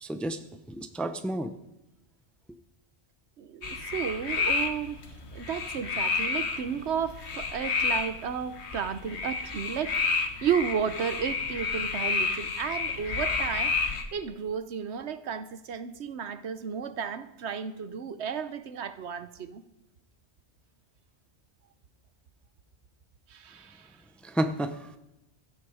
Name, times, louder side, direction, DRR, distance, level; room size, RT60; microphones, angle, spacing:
voice 1, 0.0-1.5 24.2-24.9, right 1 dB, ahead, 0.6 m, -31 dB
voice 2, 3.4-5.0 5.3-13.8 14.1-19.6 23.3-23.9, right 7 dB, 80° right, 1.1 m, -33 dB
sound 1, 3.6-14.0, left 4 dB, 75° left, 1.5 m, -30 dB
15.5 x 12.5 x 4.9 m
omnidirectional pair, 1.1 m